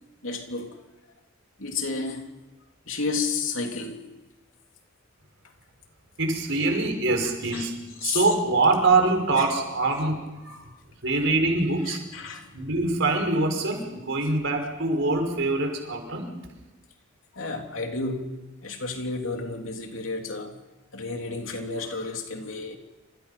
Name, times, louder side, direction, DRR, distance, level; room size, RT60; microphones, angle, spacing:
voice 1, 0.2-0.9 1.6-2.3 2.9-4.1 6.7-6.8 7.5-7.7 8.0-8.3 9.4-9.5 10.5-10.6 11.9-12.5 17.3-20.6 20.9-22.8, left 4 dB, 70° left, 3.3 m, -32 dB
voice 2, 6.2-10.7 11.0-12.0 12.5-16.3, right 3 dB, 65° right, 5.6 m, -24 dB
28.5 x 27.0 x 5.8 m
head